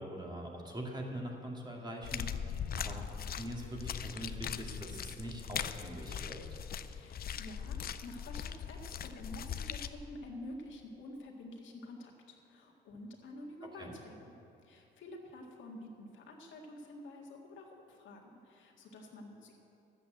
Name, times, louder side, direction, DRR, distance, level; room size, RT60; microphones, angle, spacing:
voice 1, 0.0-2.3 2.8-3.1 3.4-6.4 13.8-13.9, right 1 dB, 20° right, -1 dB, 2.2 m, -42 dB
sound 1, 2.0-9.9, left 8 dB, 50° left, 0.5 m, -40 dB
voice 2, 6.9-14.3 14.6-19.6, left 1 dB, 75° left, 0 dB, 1.9 m, -49 dB
12.0 x 8.2 x 7.7 m, 2.9 s
cardioid pair, 90°, 20 cm